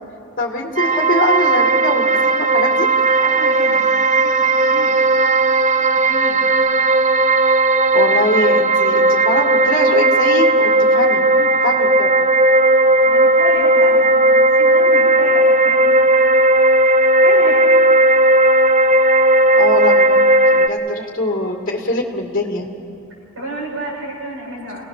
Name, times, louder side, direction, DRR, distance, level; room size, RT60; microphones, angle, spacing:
voice 1, 0.4-2.9 7.9-11.2 11.6-12.1 19.6-20.2 20.6-22.7, left 2 dB, 40° left, 0 dB, 2.1 m, -22 dB
sound 1, 0.8-20.7, right 2 dB, 35° right, 0.6 m, -14 dB
voice 2, 3.2-5.0 5.9-6.5 11.3-11.5 13.0-16.0 16.9-17.7 23.4-24.9, right 1 dB, 75° right, -4 dB, 7.3 m, -31 dB
28.5 x 18.5 x 6.6 m, 2.7 s
head